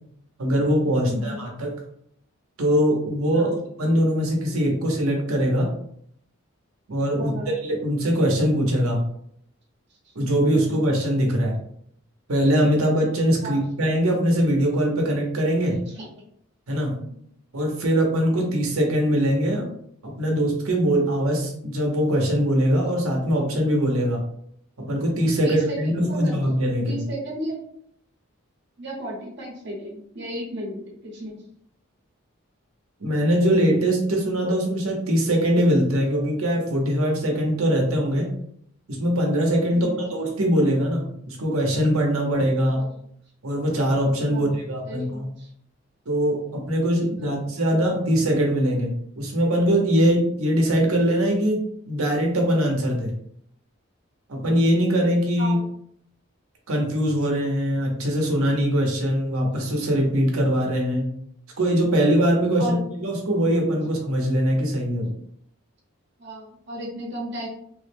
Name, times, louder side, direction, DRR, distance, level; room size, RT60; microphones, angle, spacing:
voice 1, 0.4-1.7 2.6-3.5 3.8-5.7 6.9-7.3 7.6-9.0 10.1-11.6 12.3-15.7 16.7-16.9 17.5-19.7 20.0-24.2 24.8-27.0 33.0-38.3 38.9-42.9 43.4-45.3 46.1-53.1 54.3-55.6 56.7-61.1 61.6-65.1, equal, 90° right, 0 dB, 0.9 m, -22 dB
voice 2, 1.0-1.4 3.3-3.6 7.2-7.5 10.5-10.9 13.4-13.6 15.9-16.2 17.0-17.2 25.4-26.4 26.8-27.6 28.8-31.4 39.7-40.1 42.7-42.9 44.3-44.6 44.8-45.5 47.2-47.5 55.4-55.7 62.6-62.8 66.2-67.5, right 1 dB, 55° right, -3 dB, 0.9 m, -34 dB
3.4 x 2.1 x 3.3 m, 0.68 s
head